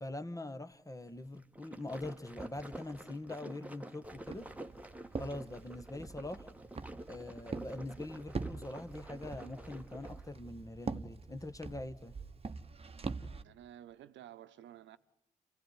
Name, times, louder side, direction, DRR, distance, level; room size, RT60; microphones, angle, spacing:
voice 1, 0.0-4.5 5.2-6.5 7.1-12.1, left 2 dB, 15° left, 1.5 m, -43 dB
sound 1, 1.4-10.3, right 1 dB, 5° right, 1.5 m, -49 dB
Walk footsteps, 4.0-13.4, right 4 dB, 30° right, 1.2 m, -44 dB
voice 2, 13.4-15.0, right 11 dB, 75° right, 1.1 m, -52 dB
28.0 x 16.0 x 9.8 m
hypercardioid pair, 45°, 19 cm